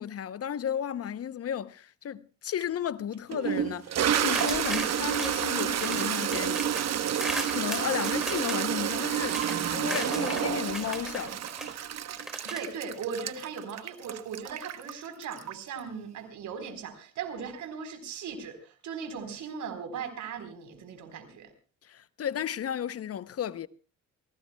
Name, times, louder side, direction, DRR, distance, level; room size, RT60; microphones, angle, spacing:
voice 1, 0.0-6.7 7.5-11.4 21.8-23.7, left 9 dB, 50° left, 0.8 m, -33 dB
Toilet flush, 2.6-2.7 3.3-15.8, right 9 dB, 60° right, 1.1 m, -30 dB
sound 1, 4.1-6.1 6.3-10.5 10.7-11.7 12.2-12.6, equal, ahead, 3.8 m, -37 dB
voice 2, 12.4-21.5, right 6 dB, 75° right, 4.1 m, -38 dB
28.0 x 17.5 x 2.3 m
cardioid pair, 90°, 30 cm